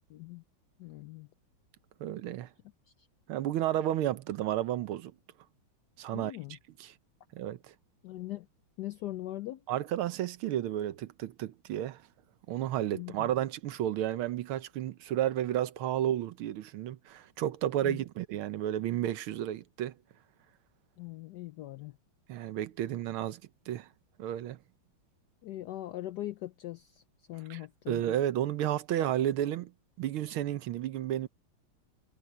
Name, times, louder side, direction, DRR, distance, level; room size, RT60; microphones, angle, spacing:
voice 1, 0.1-0.4 0.8-1.3 3.0-3.1 6.1-6.6 8.0-8.5 8.8-9.6 12.9-13.3 17.8-18.0 21.0-22.0 25.4-27.0 27.3-28.0, left 15 dB, 90° left, 0.9 m, -41 dB
voice 2, 2.0-2.5 3.3-5.1 6.0-6.3 6.8-6.9 7.3-7.6 9.7-12.0 12.5-19.9 22.3-23.4 23.7-23.9 24.2-24.6 27.5-27.6 27.9-29.7 30.0-31.3, right 12 dB, 75° right, 1.7 m, -32 dB
omnidirectional pair, 2.4 m